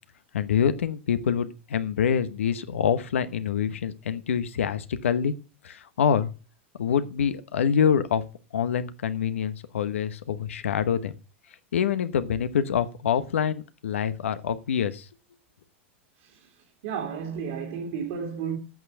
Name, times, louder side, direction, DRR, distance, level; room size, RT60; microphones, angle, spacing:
voice 1, 0.3-5.3 5.6-6.3 6.8-8.2 8.5-11.1 11.7-15.0, left 8 dB, 85° left, 1.0 m, -26 dB
voice 2, 16.8-18.6, right 7 dB, 60° right, 2.7 m, -32 dB
8.6 x 6.5 x 8.0 m
hypercardioid pair, 110°, 7 cm